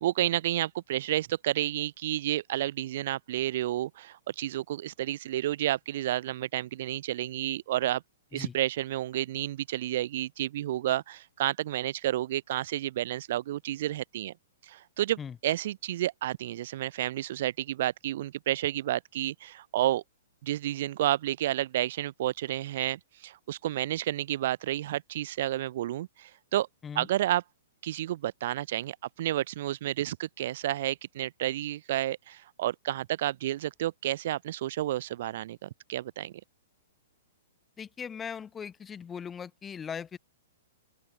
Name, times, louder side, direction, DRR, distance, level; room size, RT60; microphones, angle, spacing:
voice 1, 0.0-8.0 8.3-14.3 14.7-20.0 20.4-26.7 26.9-27.4 27.8-36.4, right 13 dB, 40° right, 1.0 m, -31 dB
voice 2, 37.8-40.2, left 7 dB, 10° left, 3.4 m, -39 dB
open air
hypercardioid pair, 180°, 0 cm